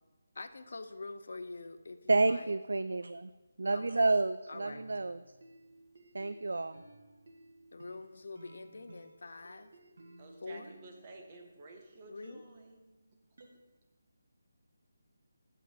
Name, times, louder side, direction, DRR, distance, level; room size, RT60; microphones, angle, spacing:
voice 1, 0.3-2.5 3.7-4.1 4.5-4.8 7.7-9.7 10.4-10.7 12.1-12.4, left 3 dB, 60° left, 9 dB, 0.7 m, -45 dB
voice 2, 2.1-3.3 3.6-5.2 6.1-6.8, right 3 dB, 85° right, 13 dB, 0.3 m, -30 dB
sound 1, 4.6-11.8 12.2-13.5, right 2 dB, 55° right, 1.5 m, -57 dB
voice 3, 10.2-12.8, right 2 dB, 25° right, 2 dB, 0.9 m, -52 dB
7.4 x 5.8 x 7.3 m, 1.2 s
hypercardioid pair, 175°, 0 cm